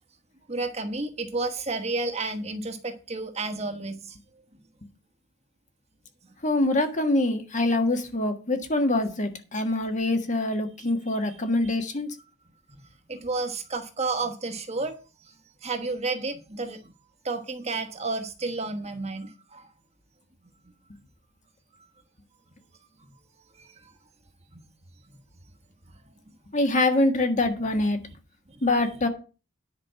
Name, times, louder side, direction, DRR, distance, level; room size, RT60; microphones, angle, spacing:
voice 1, 0.5-4.1 10.8-10.9 11.3-11.4 13.1-15.0 15.6-16.8 17.2-19.6, right 3 dB, 30° right, 1.2 m, -31 dB
voice 2, 6.4-12.1 26.5-28.0 28.6-29.1, left 2 dB, 35° left, 1.6 m, -24 dB
10.5 x 5.3 x 7.5 m
head